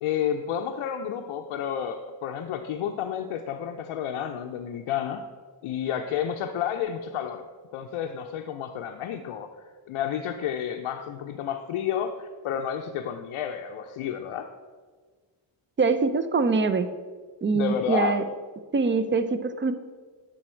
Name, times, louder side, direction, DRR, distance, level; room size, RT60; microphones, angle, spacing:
voice 1, 0.0-5.2 5.6-7.4 7.7-9.5 9.9-14.5 17.5-18.2, left 9 dB, 75° left, 3 dB, 0.6 m, -30 dB
voice 2, 15.8-16.9 17.4-18.2 18.7-19.7, right 4 dB, 25° right, 11 dB, 0.5 m, -23 dB
9.1 x 4.1 x 4.4 m, 1.5 s
cardioid pair, 55°, 49 cm